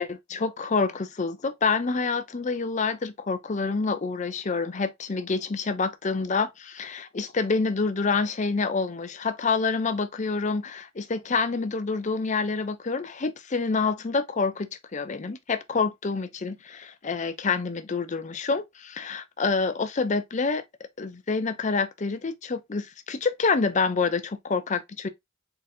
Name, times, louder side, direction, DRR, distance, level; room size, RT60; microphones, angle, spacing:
voice 1, 0.0-20.6 21.0-25.1, left 4 dB, 35° left, 0.5 m, -27 dB
4.1 x 3.9 x 2.7 m
head